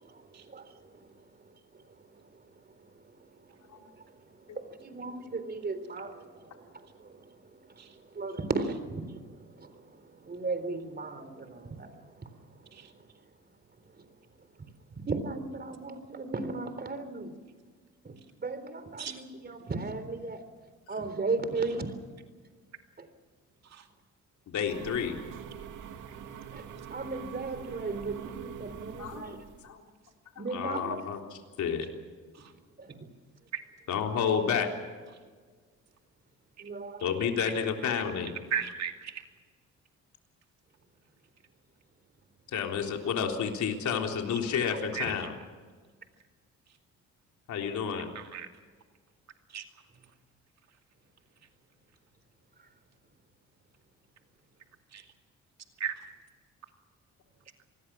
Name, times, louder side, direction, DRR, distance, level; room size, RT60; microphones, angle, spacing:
voice 1, 0.0-2.4 2.7-13.0 14.0-14.1 15.0-17.4 18.0-20.4 20.9-21.9 23.0-23.1 26.5-29.4 30.4-31.1 32.8-33.1 36.6-37.1 45.0-45.1, right 3 dB, 35° right, 11 dB, 3.7 m, -37 dB
voice 2, 24.5-25.2 29.0-29.3 29.6-29.8 30.5-31.2 31.6-31.9 33.9-34.7 37.0-38.3 42.5-45.3 47.5-48.1, left 7 dB, 70° left, 2 dB, 3.7 m, -30 dB
sound 1, 24.7-29.7, right 8 dB, 85° right, 2.5 m, -44 dB
voice 3, 38.5-39.2 44.9-45.3 48.1-48.5 49.5-49.6 54.9-55.0 55.8-55.9, right 7 dB, 60° right, 5 dB, 2.5 m, -35 dB
27.5 x 20.0 x 6.2 m, 1.5 s
cardioid pair, 90°, 30 cm